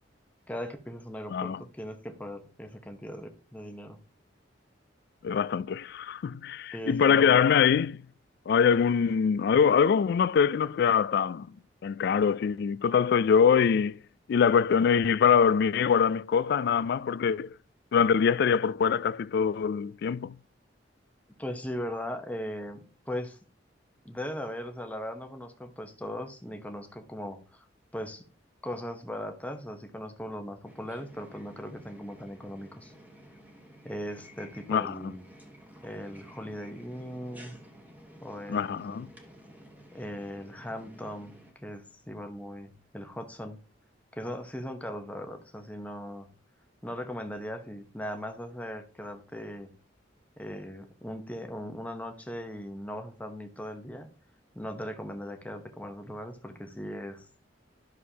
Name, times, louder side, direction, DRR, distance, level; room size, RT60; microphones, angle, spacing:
voice 1, 0.5-4.0 6.7-7.4 21.4-23.4 24.0-27.7 27.9-28.2 28.6-32.9 33.8-35.2 35.8-37.6 38.2-39.0 39.9-41.3 41.6-43.6 44.1-46.3 46.8-49.7 50.4-54.1 54.5-57.2, equal, 10° left, 0.9 m, -39 dB
voice 2, 1.3-1.6 5.2-8.0 8.5-11.5 11.8-14.0 14.3-17.5 17.9-20.4 34.7-35.1 38.5-39.1, left 7 dB, 60° left, 0.3 m, -24 dB
sound 1, 30.7-41.5, equal, 10° right, 1.3 m, -52 dB
11.0 x 6.4 x 2.8 m
head